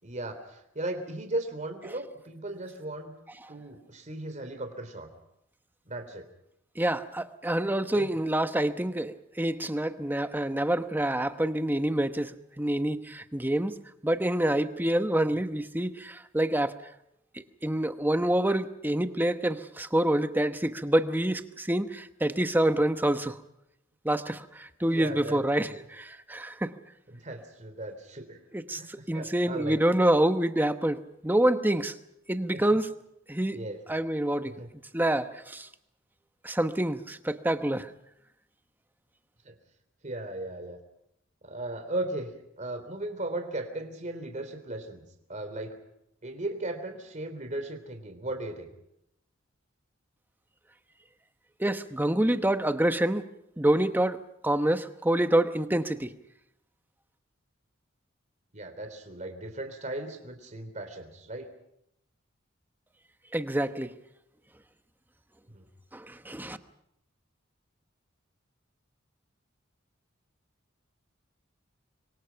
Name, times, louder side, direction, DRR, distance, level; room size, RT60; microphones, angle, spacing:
voice 1, 0.0-3.1 3.5-5.1 5.8-6.3 7.9-8.2 24.9-25.4 25.7-25.8 27.1-28.4 28.7-29.8 32.5-32.6 33.5-33.8 34.4-34.7 39.4-39.5 40.0-40.8 41.4-42.3 42.6-45.0 45.3-45.8 46.2-48.7 58.5-61.5 65.5-65.6, right 2 dB, 40° right, 6 dB, 3.3 m, -37 dB
voice 2, 6.8-13.7 14.0-16.7 17.6-23.4 24.0-26.7 28.5-31.9 32.3-32.9 33.3-33.6 33.9-34.5 34.9-35.7 36.4-37.9 51.6-53.3 53.6-54.2 54.4-56.1 63.3-63.9 65.9-66.6, right 1 dB, 10° right, 9 dB, 1.1 m, -27 dB
26.0 x 23.0 x 5.9 m, 0.80 s
head